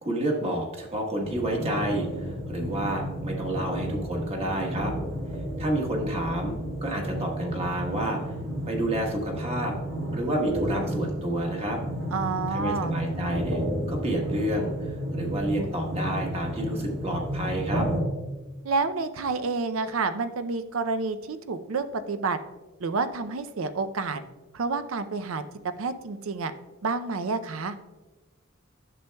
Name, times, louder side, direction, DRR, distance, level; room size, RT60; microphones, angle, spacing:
voice 1, 0.0-4.9 5.6-8.2 8.7-9.7 10.1-11.8 12.5-13.6 13.9-17.9, right 1 dB, 30° right, 1 dB, 1.2 m, -29 dB
sound 1, 1.2-18.0, equal, 60° right, 1.8 m, -32 dB
voice 2, 12.1-12.9 18.6-22.4 22.8-24.2 24.5-25.4 25.8-26.5 26.8-27.7, right 4 dB, 80° right, 11 dB, 0.5 m, -29 dB
10.5 x 6.8 x 2.2 m, 1.1 s
head